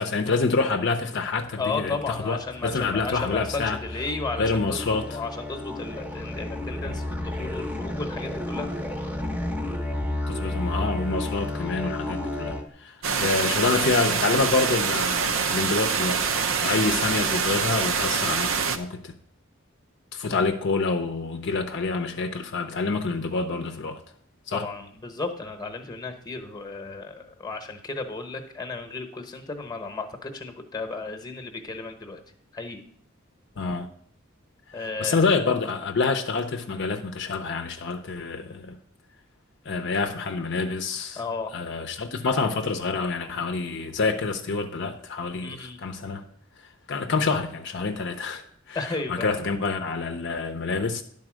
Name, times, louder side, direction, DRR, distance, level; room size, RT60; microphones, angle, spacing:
voice 1, 0.0-3.8 4.4-5.1 6.9-7.0 10.3-19.1 20.1-24.0 24.5-24.7 33.6-33.9 34.7-38.8 39.7-41.2 41.5-46.2 46.9-51.0, left 4 dB, 60° left, 0.6 m, -27 dB
sound 1, 1.2-12.6, left 1 dB, 10° right, 0.8 m, -32 dB
voice 2, 1.6-4.8 5.1-8.7 24.5-32.2 32.5-32.8 34.7-35.4 41.2-41.5 45.4-45.8 48.7-49.4, left 3 dB, 20° left, 1.0 m, -34 dB
sound 2, 13.0-18.8, right 6 dB, 70° right, 0.6 m, -25 dB
11.0 x 4.1 x 6.2 m
head